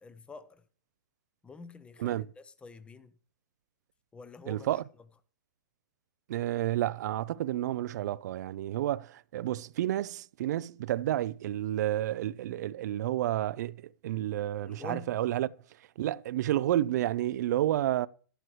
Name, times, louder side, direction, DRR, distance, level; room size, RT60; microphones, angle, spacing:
voice 1, 0.0-0.6 1.4-3.1 4.1-4.8 14.3-15.2, left 4 dB, 10° left, 0.7 m, -47 dB
voice 2, 4.5-4.8 6.3-13.8 14.0-15.5 16.0-18.1, right 13 dB, 60° right, 0.4 m, -30 dB
11.0 x 11.0 x 3.1 m
hypercardioid pair, 130°, 10 cm